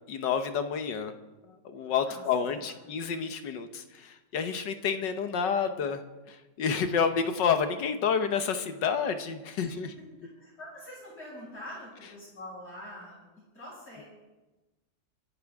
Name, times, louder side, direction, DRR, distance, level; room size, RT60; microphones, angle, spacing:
voice 1, 0.1-1.1 1.5-9.9, left 6 dB, 70° left, 8 dB, 1.6 m, -29 dB
voice 2, 10.4-13.2 13.5-14.0, left 1 dB, 50° left, -9 dB, 6.7 m, -44 dB
27.0 x 11.5 x 3.6 m, 1.1 s
omnidirectional pair, 2.1 m